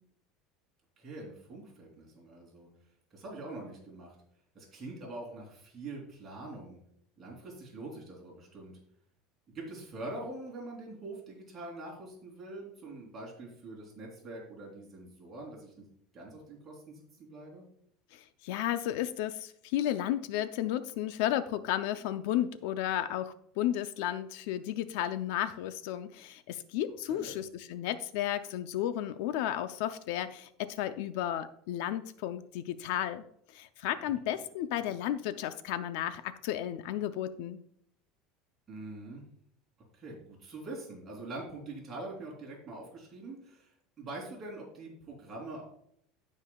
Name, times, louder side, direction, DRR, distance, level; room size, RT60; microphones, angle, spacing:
voice 1, 1.0-2.7 3.1-4.1 4.5-6.8 7.2-8.8 9.5-15.8 16.1-17.7 27.1-27.4 34.0-34.1 38.7-39.2 39.9-45.6, right 2 dB, 20° right, -3 dB, 2.9 m, -44 dB
voice 2, 18.1-37.6, left 12 dB, 65° left, 12 dB, 0.5 m, -33 dB
16.0 x 5.4 x 2.3 m, 0.68 s
cardioid pair, 175°, 0 cm